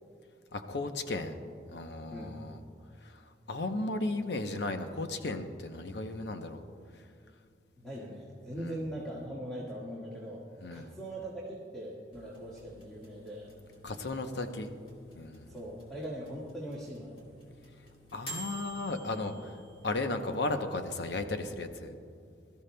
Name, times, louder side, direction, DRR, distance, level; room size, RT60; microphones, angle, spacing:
voice 1, 0.5-1.4 1.7-2.6 3.0-6.6 8.6-8.8 10.6-10.9 13.8-14.7 15.2-15.5 18.1-19.6 19.8-22.0, left 2 dB, 75° left, 7 dB, 0.8 m, -35 dB
voice 2, 2.1-2.4 7.8-10.4 10.7-13.5 15.5-17.2, right 1 dB, 5° left, -7 dB, 1.6 m, -41 dB
sound 1, 12.1-21.2, right 1 dB, 30° left, 2.1 m, -51 dB
22.0 x 13.5 x 2.2 m, 2.3 s
head